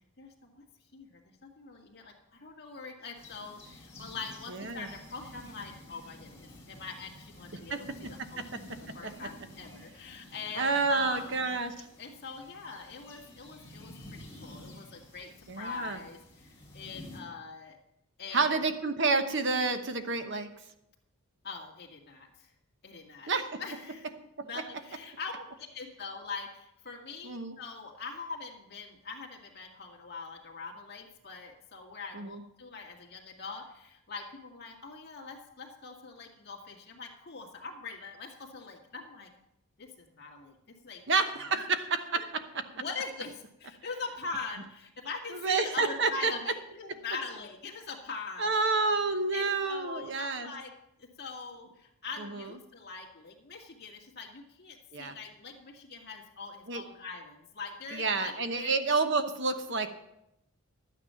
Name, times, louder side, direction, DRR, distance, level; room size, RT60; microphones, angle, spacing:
voice 1, 0.2-0.5 0.9-8.6 8.9-11.6 12.0-17.8 18.2-18.6 21.4-22.5 22.8-23.3 23.6-24.1 24.4-39.3 39.8-41.0 42.7-48.8 49.3-50.7 51.0-58.7, left 4 dB, 45° left, 0 dB, 2.1 m, -43 dB
sound 1, 3.1-17.2, left 1 dB, 15° left, 3.0 m, -51 dB
voice 2, 4.5-4.9 7.7-7.8 8.4-8.6 9.0-9.1 10.6-11.7 15.5-16.0 18.3-20.5 23.3-23.6 27.2-27.6 32.1-32.4 41.1-42.3 45.3-46.3 48.4-50.5 52.2-52.5 54.9-55.2 56.7-56.8 57.9-59.9, right 4 dB, 55° right, 8 dB, 1.0 m, -29 dB
12.0 x 9.3 x 5.7 m, 0.84 s
head